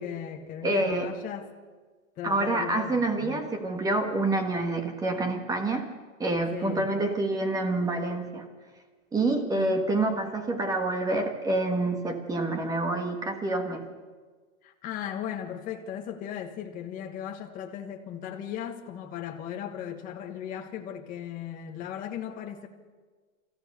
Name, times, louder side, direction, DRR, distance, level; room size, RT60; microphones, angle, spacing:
voice 1, 0.0-1.5 2.2-3.5 6.5-6.9 9.5-9.8 14.6-22.7, left 9 dB, 20° left, 1.4 m, -37 dB
voice 2, 0.6-1.1 2.2-5.9 6.2-8.4 9.1-13.8, right 2 dB, 10° right, 1.5 m, -27 dB
27.0 x 14.5 x 6.6 m
supercardioid pair, 165°, 39 cm